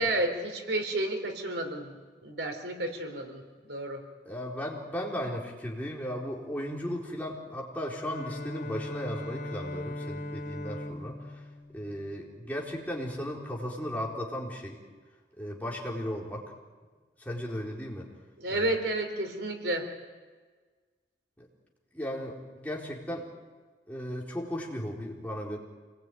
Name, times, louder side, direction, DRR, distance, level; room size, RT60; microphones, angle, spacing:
voice 1, 0.0-1.9 2.2-4.0 18.4-19.8, right 1 dB, 85° right, 4 dB, 3.9 m, -31 dB
voice 2, 4.2-11.4 11.7-14.8 15.4-16.4 17.2-18.1 18.5-18.8 21.4-21.5 21.9-23.3 23.9-25.6, equal, 10° left, -3 dB, 4.1 m, -36 dB
Bowed string instrument, 7.9-12.8, left 1 dB, 90° left, 3.2 m, -40 dB
28.0 x 20.5 x 9.3 m, 1.4 s
head